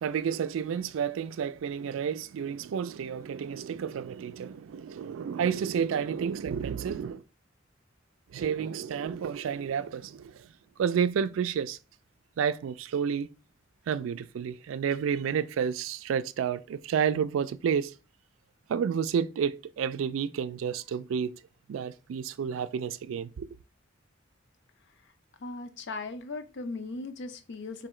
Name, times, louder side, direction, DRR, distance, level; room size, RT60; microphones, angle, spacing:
voice 1, 0.0-7.2 8.3-10.5 10.8-11.8 12.4-13.3 13.9-17.9 18.7-21.4 21.7-23.5, right 7 dB, 85° right, 0.3 m, -30 dB
voice 2, 25.4-27.9, left 3 dB, 60° left, 0.6 m, -38 dB
3.7 x 2.7 x 4.2 m
head